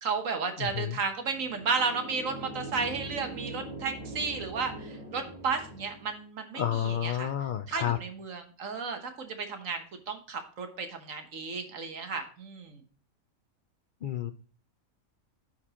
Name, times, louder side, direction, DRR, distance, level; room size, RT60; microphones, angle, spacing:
voice 1, 0.0-7.3 7.7-12.8, right 5 dB, 75° right, 6 dB, 1.5 m, -33 dB
voice 2, 0.6-1.0 6.5-8.0 14.0-14.3, left 10 dB, 70° left, 10 dB, 0.4 m, -30 dB
sound 1, 1.2-6.2, right 1 dB, 30° left, 3.3 m, -42 dB
13.5 x 4.6 x 2.9 m, 0.41 s
omnidirectional pair, 1.4 m